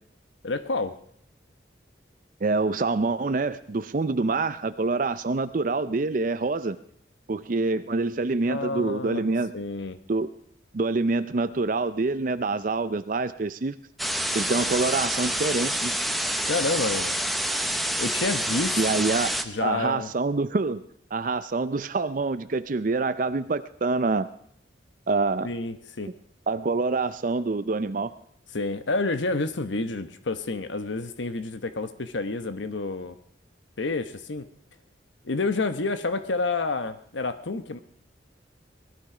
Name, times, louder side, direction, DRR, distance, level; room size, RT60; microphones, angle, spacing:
voice 1, 0.4-1.0 8.5-9.2 9.5-10.0 16.5-17.2 18.0-18.8 19.4-20.1 25.4-26.1 28.5-33.2 33.8-34.5 35.2-37.8, left 3 dB, 85° left, 11 dB, 1.0 m, -29 dB
voice 2, 2.4-6.8 7.3-9.5 10.1-10.3 10.7-13.8 14.3-15.9 18.8-19.3 19.6-20.8 21.1-24.3 25.1-25.5 26.5-28.1, right 3 dB, 45° right, 12 dB, 0.5 m, -26 dB
sound 1, 14.0-19.4, right 1 dB, ahead, 0.8 m, -27 dB
19.5 x 13.0 x 4.9 m, 0.66 s
head